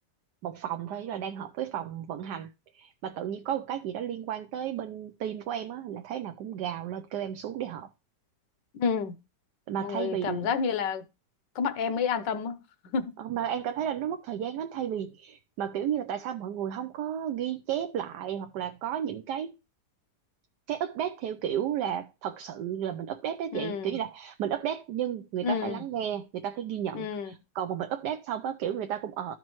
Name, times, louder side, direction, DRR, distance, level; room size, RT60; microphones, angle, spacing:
voice 1, 0.4-7.9 9.7-10.5 13.2-19.5 20.7-29.3, right 9 dB, 75° right, 1.2 m, -33 dB
voice 2, 8.8-9.2 9.8-11.0 11.5-12.6 12.9-13.1 23.5-24.0 25.4-25.8 26.9-27.3, left 6 dB, 80° left, 1.5 m, -29 dB
13.5 x 5.4 x 3.1 m
omnidirectional pair, 1.9 m